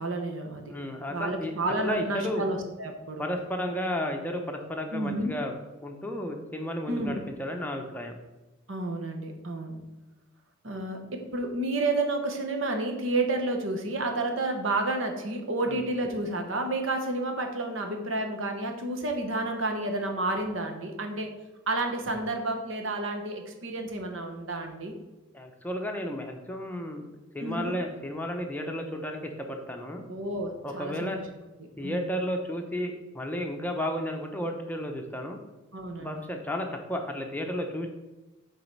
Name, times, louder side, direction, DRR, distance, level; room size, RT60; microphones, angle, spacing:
voice 1, 0.0-0.7 1.1-3.3 4.9-5.3 6.9-7.2 8.7-9.8 10.6-21.3 21.7-24.9 27.4-27.8 30.1-31.1 31.8-32.1 35.7-36.2, right 2 dB, 75° right, 4 dB, 1.1 m, -30 dB
voice 2, 0.7-1.5 1.8-2.4 3.2-5.5 5.8-8.2 15.7-15.8 25.3-27.1 27.3-30.0 30.6-31.2 31.8-35.4 36.0-37.9, equal, 10° left, 3 dB, 0.6 m, -33 dB
7.6 x 4.0 x 5.4 m, 1.1 s
head